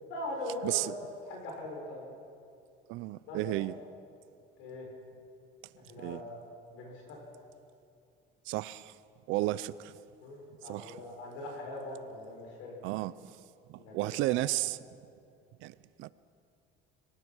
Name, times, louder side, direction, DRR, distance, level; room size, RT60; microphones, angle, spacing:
voice 1, 0.1-0.9 1.2-2.1 3.3-3.7 4.6-4.9 5.8-6.4 6.7-7.3 9.4-9.5 10.2-12.8 13.8-14.4, left 1 dB, 85° left, 7.0 m, -41 dB
voice 2, 0.6-0.9 2.9-3.7 6.0-6.2 8.5-8.9 9.3-9.9 10.7-11.0 12.8-13.1 13.7-14.8 15.6-16.1, right 17 dB, 80° right, 0.6 m, -33 dB
25.5 x 17.5 x 6.3 m
cardioid pair, 150°, 20 cm